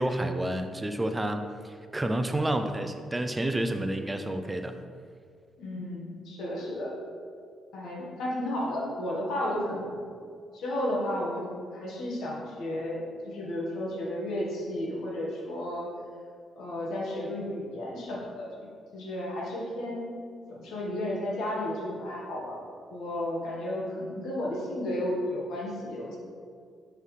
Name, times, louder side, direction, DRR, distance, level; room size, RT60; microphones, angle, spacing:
voice 1, 0.0-4.8, right 1 dB, 15° right, 7 dB, 0.4 m, -30 dB
voice 2, 5.6-6.9 7.7-10.0 10.5-15.9 16.6-20.1 20.5-22.6 22.9-26.2, left 1 dB, 75° left, -3 dB, 1.4 m, -33 dB
5.6 x 5.4 x 3.2 m, 2.2 s
cardioid pair, 90°, 0 cm